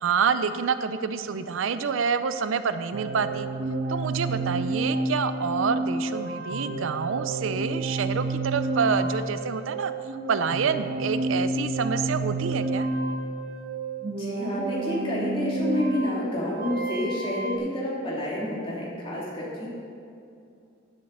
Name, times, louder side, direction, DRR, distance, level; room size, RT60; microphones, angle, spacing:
voice 1, 0.0-3.5 3.9-9.9 10.3-12.9, right 6 dB, 75° right, 11 dB, 0.5 m, -27 dB
sound 1, 2.9-17.6, right 2 dB, 50° right, 1.1 m, -30 dB
voice 2, 14.1-19.7, left 1 dB, 25° left, -6 dB, 2.9 m, -29 dB
9.7 x 8.1 x 6.6 m, 2.5 s
head